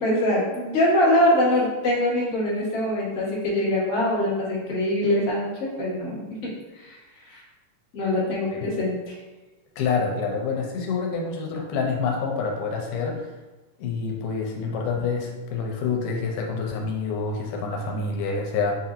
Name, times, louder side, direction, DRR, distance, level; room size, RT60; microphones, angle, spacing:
voice 1, 0.0-7.4 7.9-9.2, left 1 dB, 40° left, -7 dB, 1.1 m, -24 dB
voice 2, 9.8-13.3 13.8-18.7, left 4 dB, 85° left, 1 dB, 2.2 m, -27 dB
7.6 x 2.7 x 2.5 m, 1.2 s
omnidirectional pair, 3.7 m